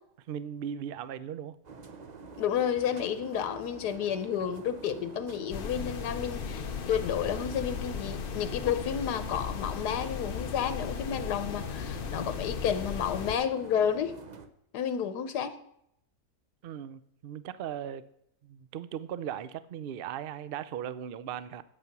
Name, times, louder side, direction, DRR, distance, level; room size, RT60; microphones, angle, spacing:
voice 1, 0.3-1.6 16.6-18.0 18.4-21.6, right 9 dB, 90° right, 15 dB, 0.5 m, -38 dB
sound 1, 1.6-14.5, right 4 dB, 40° right, 0.6 m, -47 dB
voice 2, 2.4-14.2 14.7-15.5, left 8 dB, 90° left, 11 dB, 1.4 m, -31 dB
sound 2, 5.5-13.4, left 7 dB, 50° left, 0.6 m, -36 dB
8.8 x 8.6 x 6.0 m, 0.72 s
omnidirectional pair, 1.7 m